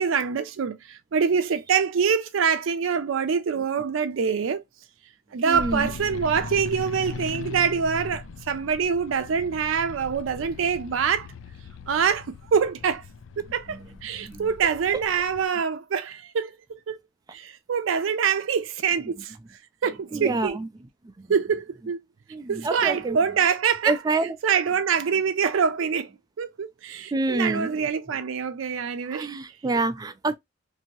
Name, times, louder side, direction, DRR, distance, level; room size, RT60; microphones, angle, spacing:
voice 1, 0.0-4.6 5.3-11.3 11.9-13.0 13.4-17.0 17.3-19.3 19.8-20.6 21.3-22.0 22.5-23.9 24.4-26.1 26.4-29.3, right 6 dB, 85° right, 0.4 m, -25 dB
voice 2, 5.4-5.9 13.7-13.8 14.2-14.5 20.1-20.7 21.2-21.3 22.3-23.2 23.8-24.3 27.1-27.8 29.1-30.3, right 2 dB, 20° right, 0.3 m, -27 dB
sound 1, 5.5-15.5, left 4 dB, 75° left, 0.4 m, -39 dB
2.7 x 2.6 x 2.9 m
head